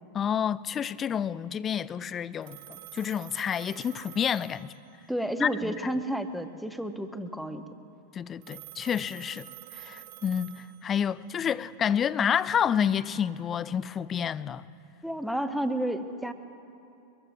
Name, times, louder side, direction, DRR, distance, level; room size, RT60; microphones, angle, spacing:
voice 1, 0.1-4.7 5.4-5.7 8.1-14.6, left 8 dB, 25° left, 0.4 m, -29 dB
Telephone, 2.4-5.3 8.4-11.2, right 16 dB, 50° right, 0.7 m, -48 dB
voice 2, 5.1-7.6 15.0-16.3, right 1 dB, ahead, 0.8 m, -31 dB
23.0 x 22.0 x 2.6 m
figure-of-eight pair, 90°, 0 cm